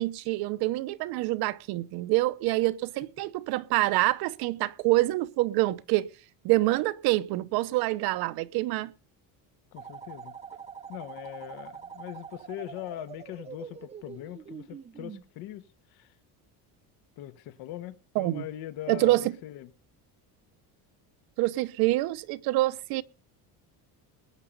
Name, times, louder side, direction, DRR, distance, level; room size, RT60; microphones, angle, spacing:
voice 1, 0.0-6.1 6.4-8.9 18.1-18.5 18.9-19.3 21.4-23.0, right 18 dB, 70° right, 0.9 m, -26 dB
voice 2, 9.7-10.3 10.9-16.1 17.2-19.7, left 13 dB, 70° left, 1.6 m, -41 dB
sound 1, 9.8-15.2, right 6 dB, 15° right, 0.7 m, -44 dB
20.0 x 9.1 x 5.4 m
cardioid pair, 175°, 39 cm